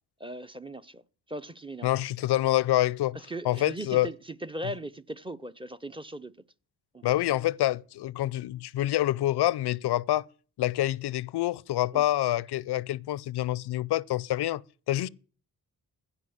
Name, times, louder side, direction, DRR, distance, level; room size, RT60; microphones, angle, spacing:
voice 1, 0.2-1.0 1.3-1.9 3.3-6.4 6.9-7.1 11.9-12.0, right 1 dB, 15° right, 0.6 m, -38 dB
voice 2, 1.8-3.2 3.4-4.1 7.0-10.2 10.6-14.6 14.9-15.1, left 14 dB, 85° left, 0.5 m, -27 dB
16.0 x 5.5 x 7.9 m
cardioid pair, 90°, 39 cm